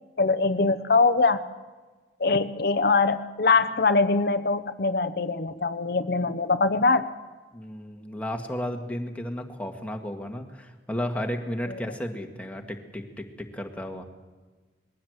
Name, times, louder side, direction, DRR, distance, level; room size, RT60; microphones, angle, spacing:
voice 1, 0.2-1.4 2.2-7.1, left 3 dB, 60° left, 11 dB, 0.8 m, -22 dB
voice 2, 7.5-14.0, equal, 10° left, 3 dB, 1.8 m, -33 dB
21.5 x 16.0 x 8.0 m, 1.3 s
head